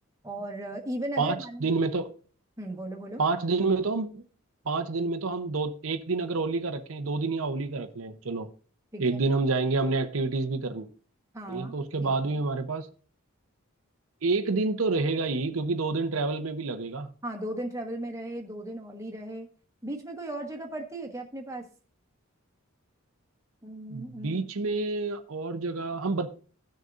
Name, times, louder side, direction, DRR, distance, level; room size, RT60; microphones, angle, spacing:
voice 1, 0.2-1.7 2.6-3.2 8.9-9.2 11.3-12.3 17.2-19.5 19.8-21.6 23.6-24.7, right 1 dB, 15° right, 1.2 m, -37 dB
voice 2, 1.2-2.1 3.2-4.2 4.7-8.5 9.0-10.9 11.5-12.9 14.2-17.1 23.9-26.3, right 3 dB, 75° right, 0.8 m, -28 dB
17.0 x 6.6 x 2.5 m
head